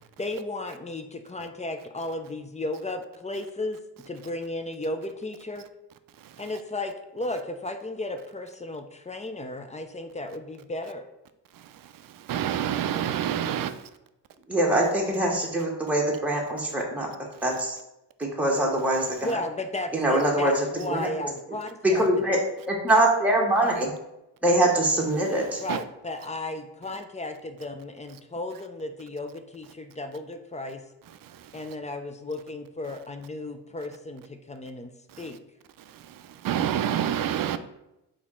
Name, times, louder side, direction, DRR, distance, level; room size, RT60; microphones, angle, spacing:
voice 1, 0.0-3.8 4.1-5.7 6.4-11.0 19.2-22.1 25.6-30.8 31.5-34.9 35.2-35.4, left 2 dB, 15° left, 7 dB, 0.4 m, -34 dB
voice 2, 11.5-13.9 25.7-25.8 31.2-31.5 35.1-35.3 35.9-37.6, right 10 dB, 50° right, 11 dB, 0.5 m, -29 dB
voice 3, 14.5-17.1 17.4-17.8 18.2-19.4 19.9-21.3 21.8-22.4 22.7-23.9 24.4-25.6, right 1 dB, 5° right, -2 dB, 1.1 m, -23 dB
4.1 x 3.1 x 3.7 m, 0.90 s
cardioid pair, 65°, 43 cm